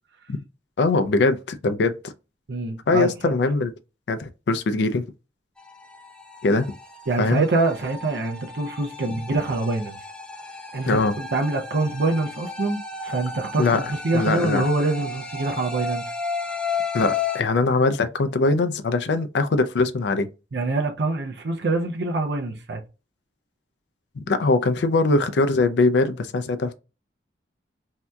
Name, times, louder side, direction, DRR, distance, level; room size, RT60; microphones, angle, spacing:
voice 1, 0.8-2.1 2.9-3.7 4.1-5.1 6.4-6.7 7.2-7.5 10.9-11.1 13.6-13.8 14.1-14.6 16.9-20.3 24.2-26.8, left 3 dB, 75° left, 0.4 m, -21 dB
voice 2, 2.5-3.3 7.1-10.0 10.7-16.0 20.5-22.8, right 2 dB, 70° right, 0.5 m, -25 dB
sound 1, 5.6-17.4, left 5 dB, 5° left, 0.3 m, -33 dB
3.4 x 2.7 x 2.2 m
head